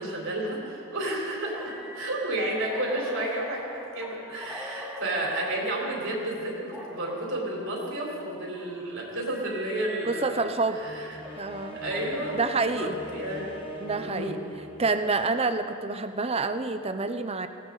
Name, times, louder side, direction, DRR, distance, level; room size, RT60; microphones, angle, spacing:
voice 1, 0.0-10.4 10.8-11.2 11.7-13.5 14.0-14.4, right 1 dB, 60° right, -3 dB, 4.0 m, -31 dB
sound 1, 1.4-6.0 6.7-7.4 8.2-10.6 11.1-13.5, equal, 5° right, 1.5 m, -43 dB
sound 2, 10.0-15.4, left 1 dB, 25° left, 1.6 m, -42 dB
voice 2, 10.0-10.8 11.4-11.8 12.3-13.0 13.8-14.4 14.8-17.5, right 3 dB, 25° right, 9 dB, 0.6 m, -28 dB
19.5 x 18.0 x 4.0 m, 2.6 s
head